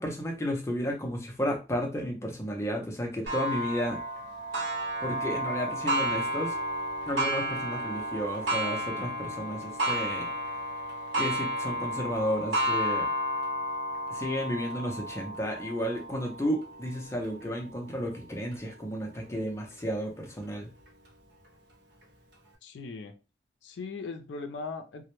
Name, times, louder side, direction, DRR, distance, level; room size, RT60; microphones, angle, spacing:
voice 1, 0.0-4.0 5.0-6.6 7.1-10.3 11.2-13.1 14.1-20.7, equal, 15° left, 2 dB, 0.4 m, -32 dB
Clock, 3.3-18.6 19.2-19.3 19.8-19.9 20.9-21.0, equal, 75° right, 0.7 m, -32 dB
voice 2, 22.6-23.1 23.6-25.1, left 4 dB, 80° left, 7 dB, 0.4 m, -39 dB
2.0 x 2.0 x 2.9 m, 0.31 s
head